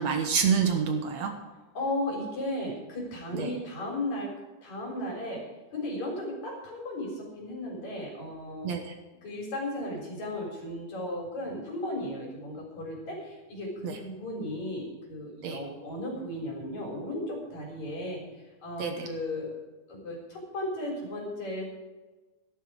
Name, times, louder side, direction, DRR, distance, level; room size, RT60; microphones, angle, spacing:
voice 1, 0.0-1.3 3.3-3.5 8.6-8.9 13.8-13.9 15.4-15.6 18.8-19.1, right 6 dB, 65° right, 5 dB, 2.2 m, -27 dB
voice 2, 1.8-4.3 4.6-5.4 5.7-8.7 9.2-18.2 18.6-19.5 19.9-21.7, left 1 dB, 60° left, -1 dB, 5.2 m, -35 dB
13.5 x 12.5 x 4.9 m, 1.2 s
omnidirectional pair, 3.6 m